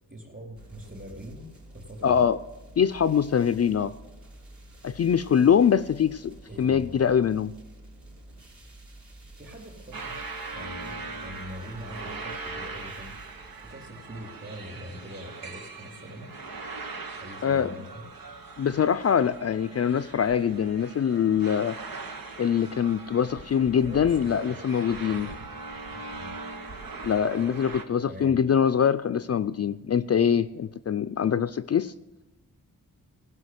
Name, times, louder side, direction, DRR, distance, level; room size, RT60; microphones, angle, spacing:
voice 1, 0.1-1.5 1.7-2.3 6.5-6.9 9.4-10.2 10.5-16.3 17.2-18.0 23.8-24.6 25.0-25.3 25.9-26.4 27.4-27.6 28.1-28.4, equal, 35° right, 3 dB, 4.0 m, -43 dB
sound 1, 0.5-13.7, right 1 dB, 55° right, 3.6 m, -49 dB
voice 2, 2.0-2.4 2.8-3.9 4.8-7.5 17.4-17.7 18.6-21.7 22.4-25.3 27.0-31.9, left 8 dB, 45° left, 12 dB, 0.4 m, -23 dB
sound 2, 9.9-27.8, right 3 dB, 85° right, 1.3 m, -40 dB
15.5 x 5.7 x 8.0 m, 1.1 s
cardioid pair, 65°, 34 cm